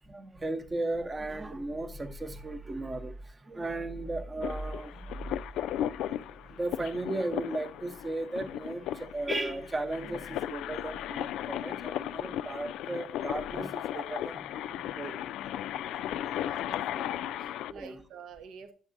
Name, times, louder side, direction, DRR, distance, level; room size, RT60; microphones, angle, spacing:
voice 1, 0.1-5.2 6.4-15.1 17.2-17.3 17.7-18.0, right 2 dB, 15° right, 0.7 m, -36 dB
sound 1, 4.4-17.7, left 11 dB, 75° left, 0.3 m, -36 dB
voice 2, 16.2-18.7, right 6 dB, 75° right, 0.8 m, -49 dB
10.0 x 7.2 x 2.5 m
cardioid pair, 170°, 0 cm